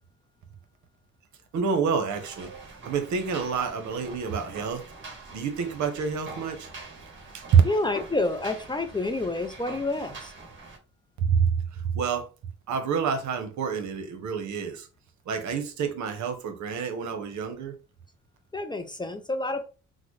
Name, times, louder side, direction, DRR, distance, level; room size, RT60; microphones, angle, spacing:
voice 1, 1.5-2.5 2.8-4.8 5.3-6.7 7.3-7.6 11.2-12.3 12.7-14.9 15.3-17.7, right 6 dB, 70° right, 0.9 m, -27 dB
sound 1, 2.1-10.8, right 3 dB, 40° right, 1.4 m, -44 dB
voice 2, 7.6-10.3 18.5-19.6, left 2 dB, 15° left, 0.4 m, -29 dB
3.8 x 2.1 x 3.1 m
cardioid pair, 90°, 30 cm